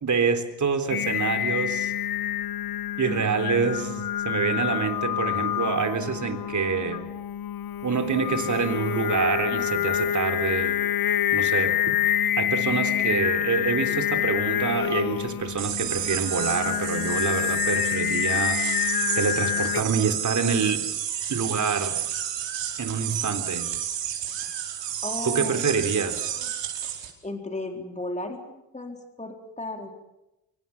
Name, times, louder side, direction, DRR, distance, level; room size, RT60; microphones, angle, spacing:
voice 1, 0.0-1.9 3.0-7.1 7.8-10.8 11.3-11.8 12.4-20.9 21.3-22.0 22.8-23.7 25.3-26.3, right 5 dB, 40° right, 9 dB, 3.8 m, -26 dB
Singing, 0.9-19.8, left 11 dB, 50° left, 1.0 m, -27 dB
voice 2, 3.0-3.5 25.0-25.6 27.2-29.9, left 2 dB, 15° left, 4 dB, 4.1 m, -35 dB
sound 1, 15.6-27.1, right 10 dB, 70° right, 4.9 m, -31 dB
25.5 x 24.5 x 7.3 m, 0.93 s
supercardioid pair, 70°, 44 cm